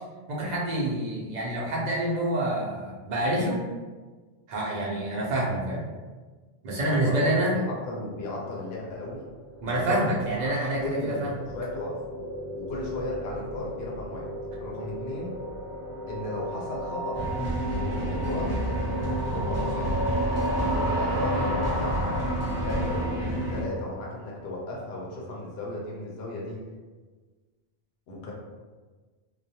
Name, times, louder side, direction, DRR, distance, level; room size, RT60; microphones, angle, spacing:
voice 1, 0.3-3.7 4.5-5.9 6.6-7.6 9.6-11.4, right 1 dB, 50° right, -4 dB, 0.6 m, -27 dB
voice 2, 6.8-9.2 9.6-10.5 10.8-12.0 12.5-14.3 14.6-15.3 16.1-17.2 17.8-18.5 19.2-20.0 20.7-22.2 22.6-26.6 28.1-28.3, left 2 dB, 80° left, -3 dB, 0.8 m, -35 dB
sound 1, 9.0-24.2, right 1 dB, ahead, 0.7 m, -33 dB
sound 2, 17.1-23.6, equal, 25° left, 0.3 m, -30 dB
2.3 x 2.1 x 2.7 m, 1.4 s
omnidirectional pair, 1.1 m